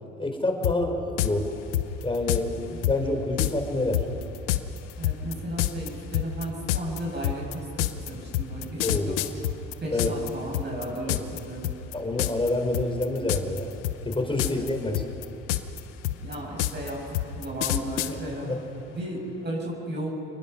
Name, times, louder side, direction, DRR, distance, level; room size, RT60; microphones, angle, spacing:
voice 1, 0.2-1.5 2.0-4.0 8.8-9.2 9.9-10.1 11.1-11.2 11.9-13.7 14.1-15.0 18.4-18.6, left 2 dB, 15° left, 3 dB, 5.1 m, -27 dB
sound 1, 0.6-0.8 1.2-1.3 1.7-2.4 2.8-3.0 3.4-3.5 3.9-10.3 10.5-11.4 11.6-11.9 12.2-12.5 12.7-13.6 13.8-14.7 14.9-18.1, left 15 dB, 80° left, 1.0 m, -26 dB
voice 2, 5.0-9.1 9.8-11.7 14.4-14.7 16.1-18.5 18.9-20.1, right 1 dB, 30° right, -3 dB, 7.5 m, -34 dB
28.5 x 21.0 x 5.7 m, 2.9 s
hypercardioid pair, 60°, 34 cm